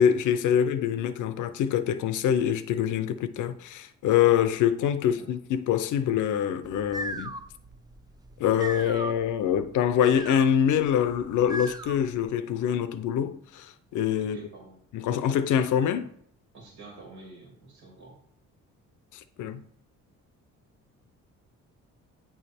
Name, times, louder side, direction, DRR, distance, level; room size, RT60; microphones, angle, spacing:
voice 1, 0.0-7.3 8.4-14.4 14.9-16.1 19.1-19.6, left 9 dB, 80° left, 0.6 m, -25 dB
sound 1, 6.6-12.2, right 1 dB, 15° right, 0.4 m, -39 dB
voice 2, 14.2-14.8 16.5-18.2, right 3 dB, 85° right, 2.1 m, -48 dB
8.8 x 3.2 x 4.3 m
cardioid pair, 90°, 30 cm